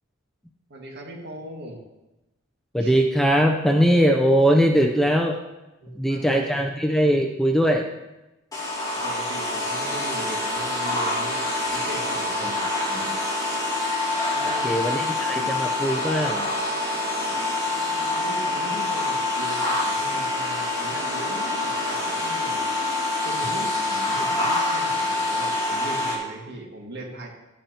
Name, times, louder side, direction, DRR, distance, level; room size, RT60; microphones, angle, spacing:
voice 1, 0.7-1.8 2.8-3.0 5.8-6.6 9.0-12.4 14.3-15.0 18.0-22.7 23.2-27.3, right 1 dB, 55° right, 0 dB, 1.8 m, -39 dB
voice 2, 2.7-5.4 5.9-7.9 12.4-12.5 12.9-13.2 14.4-16.5, equal, ahead, 2 dB, 0.5 m, -21 dB
sound 1, 8.5-26.2, left 2 dB, 20° left, 2.6 m, -26 dB
12.0 x 8.6 x 2.9 m, 1.0 s
head